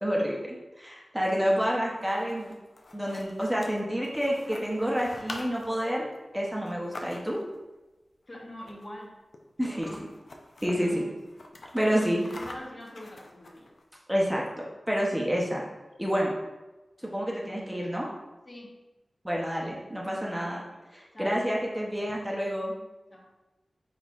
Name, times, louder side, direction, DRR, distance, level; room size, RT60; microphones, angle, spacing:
voice 1, 0.0-2.5 2.9-6.1 6.3-7.4 9.6-9.9 10.6-11.0 11.7-12.3 14.1-15.6 16.0-16.4 17.0-18.1 19.2-20.6 20.9-22.7, equal, 10° right, -3 dB, 0.7 m, -28 dB
sound 1, 1.9-7.6 8.6-9.1 9.3-9.4 9.7-10.8 11.2-13.8, left 2 dB, 65° left, 0.5 m, -45 dB
voice 2, 8.3-9.1 9.6-10.0 10.7-11.2 12.0-13.7 18.5-18.8 20.4-20.7 21.1-21.4 23.1-23.3, left 1 dB, 35° left, -2 dB, 0.9 m, -44 dB
4.7 x 4.2 x 2.4 m, 1.1 s
wide cardioid pair, 90°, 0 cm